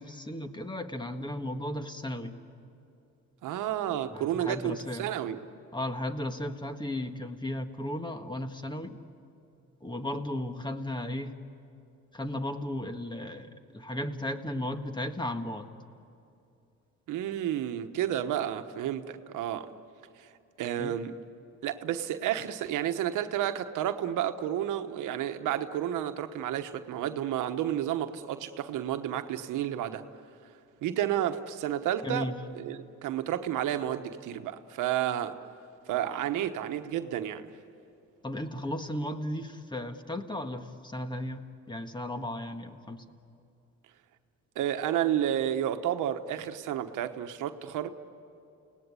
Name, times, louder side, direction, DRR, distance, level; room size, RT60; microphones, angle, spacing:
voice 1, 0.0-2.3 4.1-5.1 5.7-9.0 9.8-11.3 12.1-15.7 20.8-20.9 32.0-32.4 38.2-43.0, left 1 dB, 15° left, 7 dB, 1.6 m, -35 dB
voice 2, 3.4-5.4 17.1-19.7 20.2-20.3 20.6-21.1 21.6-30.0 30.8-32.3 32.5-35.4 35.9-37.5 44.5-47.9, right 11 dB, 90° right, 8 dB, 1.2 m, -31 dB
30.0 x 18.5 x 9.8 m, 2.6 s
cardioid pair, 90°, 30 cm